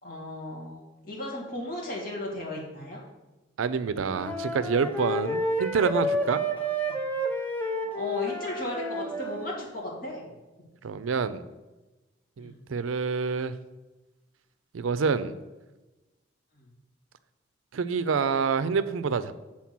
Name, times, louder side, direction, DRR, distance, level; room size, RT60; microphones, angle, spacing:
voice 1, 0.0-3.0 6.4-7.0 7.9-10.3 12.4-12.6 16.5-16.7, left 1 dB, 45° left, -4 dB, 2.3 m, -36 dB
voice 2, 3.6-6.4 10.8-11.4 12.4-13.5 14.7-15.3 17.7-19.3, right 5 dB, 90° right, 14 dB, 0.4 m, -27 dB
Wind instrument woodwind instrument, 4.0-9.5, equal, 10° left, 0.7 m, -30 dB
7.2 x 4.3 x 6.0 m, 1.1 s
head